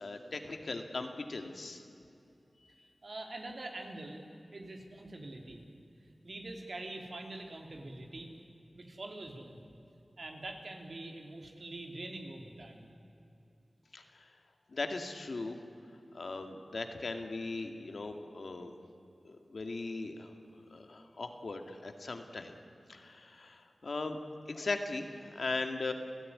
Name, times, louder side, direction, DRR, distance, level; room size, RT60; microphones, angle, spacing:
voice 1, 0.0-1.8 13.9-14.2 14.7-15.6 16.1-18.7 19.2-20.3 20.7-22.6 22.9-24.2 24.5-25.9, left 3 dB, 70° left, 5 dB, 2.2 m, -39 dB
voice 2, 2.8-4.2 4.5-5.6 6.0-8.3 8.7-9.6 10.2-12.9, right 2 dB, 60° right, 2 dB, 3.5 m, -44 dB
29.0 x 16.5 x 9.8 m, 2.7 s
wide cardioid pair, 65°, 0 cm